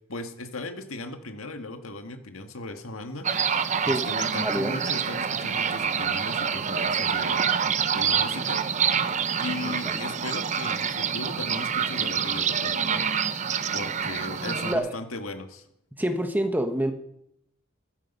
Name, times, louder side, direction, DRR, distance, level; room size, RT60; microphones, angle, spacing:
voice 1, 0.1-3.3 3.8-7.5 7.9-8.6 9.4-13.1 13.7-15.7, left 2 dB, 80° left, 6 dB, 1.7 m, -37 dB
sound 1, 3.2-14.7, right 7 dB, 35° right, 0.6 m, -27 dB
voice 2, 4.4-4.8 9.7-10.0 14.4-14.9 16.0-16.9, right 1 dB, 10° right, 7 dB, 1.0 m, -27 dB
14.0 x 14.0 x 5.5 m, 0.77 s
head